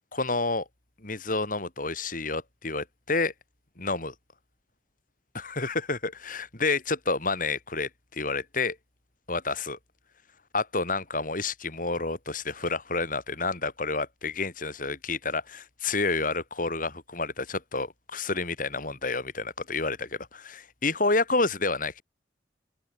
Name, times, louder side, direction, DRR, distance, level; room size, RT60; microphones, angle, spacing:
voice 1, 0.1-0.6 1.0-3.3 3.8-4.1 5.3-8.8 9.3-9.8 10.5-22.0, left 3 dB, 50° left, 5.1 m, -29 dB
open air
head